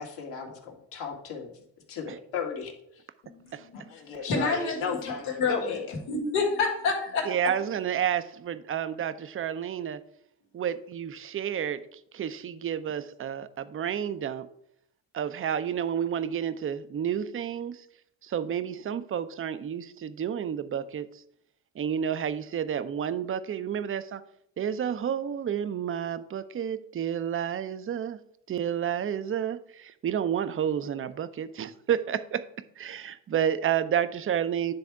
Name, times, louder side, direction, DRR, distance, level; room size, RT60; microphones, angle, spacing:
voice 1, 0.0-1.5 1.9-3.0 3.9-5.9, left 6 dB, 70° left, 0 dB, 1.7 m, -35 dB
voice 2, 3.2-4.0 4.3-4.8 5.4-5.8 6.1-7.3, left 4 dB, 90° left, -1 dB, 2.0 m, -28 dB
voice 3, 7.2-10.0 10.5-11.8 12.1-14.5 15.1-17.8 18.2-21.1 21.8-24.2 24.6-28.2 28.5-32.4 32.8-34.7, right 9 dB, 30° right, 13 dB, 0.5 m, -30 dB
9.6 x 3.5 x 4.7 m, 0.73 s
supercardioid pair, 65°, 45 cm